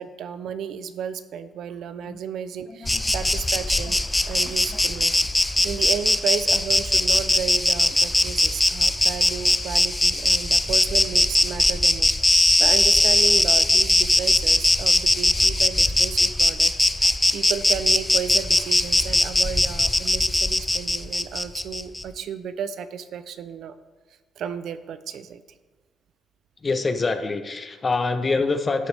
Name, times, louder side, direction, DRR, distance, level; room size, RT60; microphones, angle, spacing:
voice 1, 0.0-4.0 4.3-5.3 5.6-23.7 24.4-25.4, right 7 dB, 75° right, 12 dB, 0.6 m, -33 dB
voice 2, 2.7-3.0 3.8-3.9 4.7-4.8 10.8-10.9 26.6-28.9, left 3 dB, 30° left, 8 dB, 0.9 m, -25 dB
Insect, 2.9-22.0, left 1 dB, 10° left, 0.4 m, -20 dB
11.5 x 8.1 x 3.4 m, 1.3 s
cardioid pair, 90°, 0 cm